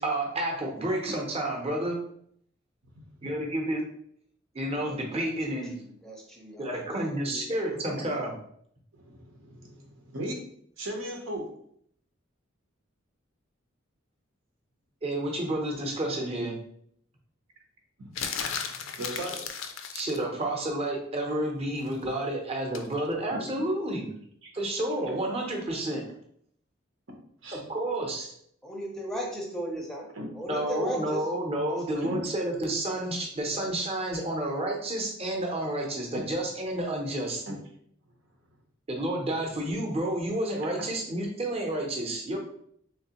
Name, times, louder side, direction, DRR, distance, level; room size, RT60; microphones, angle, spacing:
voice 1, 0.0-2.0 3.2-3.8 4.5-5.7 6.6-8.3 15.0-16.6 19.9-24.1 24.5-26.0 27.5-28.3 30.5-37.4 38.9-42.4, right 1 dB, 30° right, 0 dB, 0.7 m, -30 dB
voice 2, 4.8-5.3 5.7-7.4 28.6-30.1 30.4-31.2 31.7-31.8, equal, ahead, -1 dB, 0.6 m, -36 dB
voice 3, 8.9-10.4 10.8-11.5 18.0-18.1 18.9-19.4 23.3-23.4 24.4-24.5 27.4-27.6 30.1-30.3 32.0-32.2 37.5-37.6, equal, 90° right, 1 dB, 0.9 m, -37 dB
sound 1, 18.2-20.2 22.7-22.9, left 7 dB, 80° left, 0.4 m, -34 dB
3.4 x 3.1 x 2.9 m, 0.66 s
head